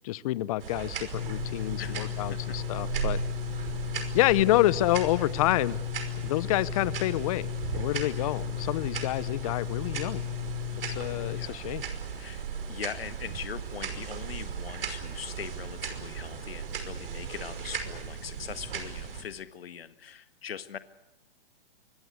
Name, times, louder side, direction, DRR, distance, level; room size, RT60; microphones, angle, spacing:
voice 1, 0.0-3.2 4.1-5.8 6.2-7.5 7.7-10.2 10.9-11.8, left 16 dB, 35° left, 20 dB, 0.9 m, -28 dB
sound 1, 0.6-19.2, right 7 dB, 65° right, 5.5 m, -37 dB
sound 2, 1.1-11.5, left 16 dB, 50° left, 1.5 m, -35 dB
voice 2, 1.8-2.6 11.3-11.7 12.1-12.4 12.7-20.8, left 8 dB, 75° left, 11 dB, 1.7 m, -41 dB
25.0 x 22.0 x 8.2 m, 0.94 s
hypercardioid pair, 145°, 30 cm